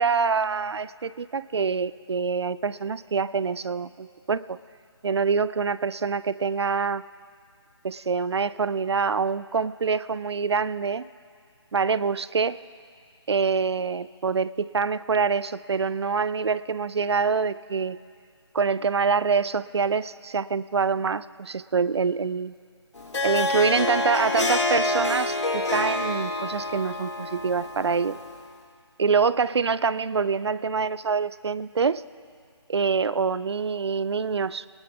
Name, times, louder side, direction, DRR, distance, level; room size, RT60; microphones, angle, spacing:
voice 1, 0.0-4.6 5.0-7.0 7.8-11.1 11.7-12.6 13.3-18.0 18.5-22.5 23.2-28.2 29.0-32.0 32.7-34.6, right 5 dB, 65° right, 17 dB, 0.5 m, -25 dB
Harp, 23.0-28.4, left 2 dB, 75° left, 2.0 m, -27 dB
26.0 x 19.5 x 2.4 m, 2.2 s
figure-of-eight pair, 155°, 15 cm